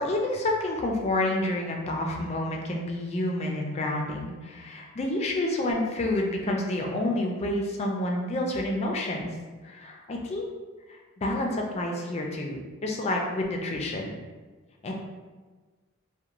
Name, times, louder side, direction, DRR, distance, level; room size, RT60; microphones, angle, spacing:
voice 1, 0.0-9.3 9.6-10.5 11.2-14.1 14.8-14.9, left 1 dB, 30° left, 0 dB, 0.3 m, -29 dB
2.9 x 2.1 x 2.4 m, 1.4 s
head